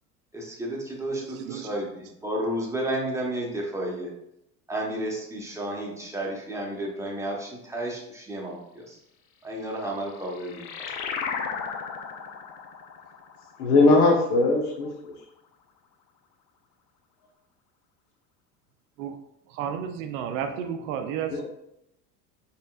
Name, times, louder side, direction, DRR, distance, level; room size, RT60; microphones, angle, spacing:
voice 1, 0.3-4.1 4.7-9.0 9.4-10.6, right 1 dB, 5° right, -2 dB, 1.0 m, -32 dB
voice 2, 1.1-1.7 19.0-19.2 19.5-21.4, right 8 dB, 55° right, 7 dB, 0.6 m, -32 dB
sound 1, 9.8-14.8, left 6 dB, 45° left, 0.6 m, -36 dB
voice 3, 13.6-15.1 21.3-21.4, left 3 dB, 65° left, 2 dB, 1.0 m, -20 dB
4.1 x 3.7 x 2.4 m, 0.79 s
hypercardioid pair, 75°, 47 cm